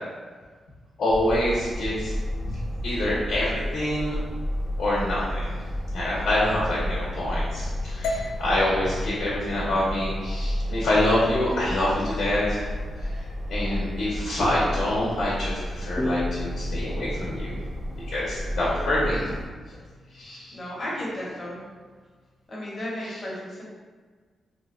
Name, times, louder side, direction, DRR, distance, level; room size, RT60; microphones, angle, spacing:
voice 1, 1.0-2.1 2.4-2.6 2.8-4.2 4.8-5.5 5.9-12.7 13.5-17.5 18.1-19.3 20.2-20.5, left 1 dB, 70° left, -6 dB, 0.7 m, -26 dB
sound 1, 1.1-19.4, equal, 25° right, 0.6 m, -32 dB
sound 2, 8.0-12.2, left 2 dB, 90° left, 0.3 m, -38 dB
sound 3, 16.0-19.4, left 1 dB, 10° left, 0.3 m, -35 dB
voice 2, 20.5-21.6 22.5-23.6, left 1 dB, 30° left, -6 dB, 0.8 m, -33 dB
2.7 x 2.2 x 3.6 m, 1.5 s
wide cardioid pair, 150°, 0 cm